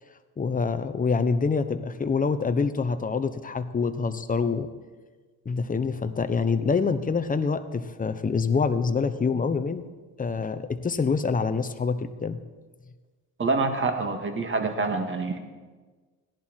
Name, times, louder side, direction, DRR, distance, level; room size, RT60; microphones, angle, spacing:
voice 1, 0.4-4.7 5.4-9.9 10.2-12.4, left 5 dB, 20° left, 10 dB, 1.0 m, -26 dB
voice 2, 13.4-15.4, right 3 dB, 30° right, 5 dB, 2.0 m, -26 dB
16.5 x 11.0 x 4.6 m, 1.4 s
supercardioid pair, 80°, 39 cm